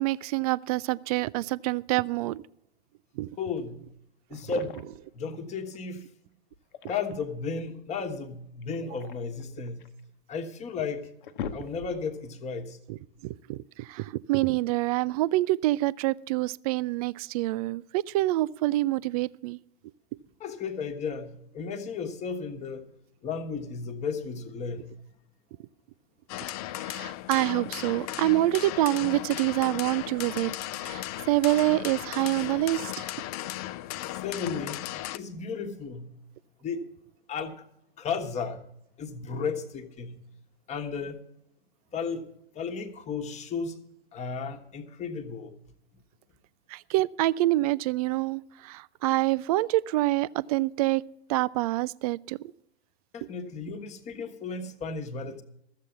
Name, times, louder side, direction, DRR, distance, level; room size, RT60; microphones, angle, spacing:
voice 1, 0.0-2.4 3.2-3.3 12.9-13.0 13.2-19.6 26.8-30.5 30.8-33.1 46.7-51.0 51.3-52.5, right 17 dB, 40° right, 0.4 m, -26 dB
voice 2, 3.4-3.8 4.3-4.9 5.1-6.1 6.9-9.9 10.3-11.1 11.5-12.8 20.4-22.8 23.2-25.0 34.1-34.8 35.1-36.1 36.6-36.8 37.3-37.6 38.0-38.6 39.0-40.2 40.7-41.2 41.9-42.2 42.5-43.8 44.1-45.5 53.1-55.4, left 5 dB, 20° left, 1.3 m, -34 dB
sound 1, 4.3-5.1 6.5-7.3 8.6-10.0 10.6-10.7 11.0-12.2, left 7 dB, 55° left, 1.1 m, -40 dB
sound 2, 26.3-35.2, left 15 dB, 35° left, 0.6 m, -36 dB
14.0 x 7.6 x 8.2 m
hypercardioid pair, 115°, 31 cm